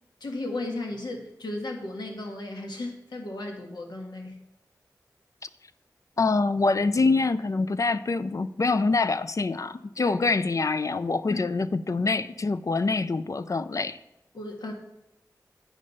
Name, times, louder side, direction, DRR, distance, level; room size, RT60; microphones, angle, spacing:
voice 1, 0.2-4.3 10.0-10.4 11.3-11.4 14.3-14.7, left 2 dB, 85° left, 1 dB, 1.4 m, -35 dB
voice 2, 6.2-14.0, left 3 dB, 50° left, 13 dB, 0.4 m, -25 dB
8.6 x 5.1 x 5.4 m, 0.92 s
cardioid pair, 50°, 7 cm